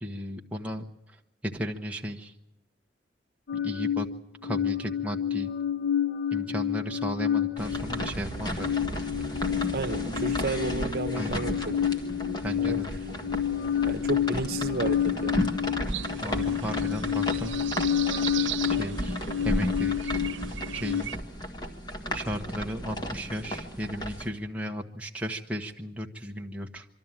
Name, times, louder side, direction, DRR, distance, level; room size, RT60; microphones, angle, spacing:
voice 1, 0.0-0.8 1.4-2.3 3.6-4.1 4.4-5.5 6.3-8.7 11.2-11.4 12.4-12.9 16.2-17.5 18.7-20.2 20.7-21.1 22.1-26.8, equal, 5° right, 1 dB, 1.1 m, -35 dB
sound 1, 3.5-21.0, left 9 dB, 65° left, 0.9 m, -29 dB
sound 2, 7.6-24.3, equal, 25° left, 1.7 m, -34 dB
voice 2, 9.7-11.9 12.6-12.8 13.8-15.5, right 2 dB, 55° right, 8 dB, 1.2 m, -32 dB
sound 3, 15.9-21.2, right 11 dB, 85° right, 0.9 m, -38 dB
25.5 x 12.5 x 8.9 m, 0.88 s
head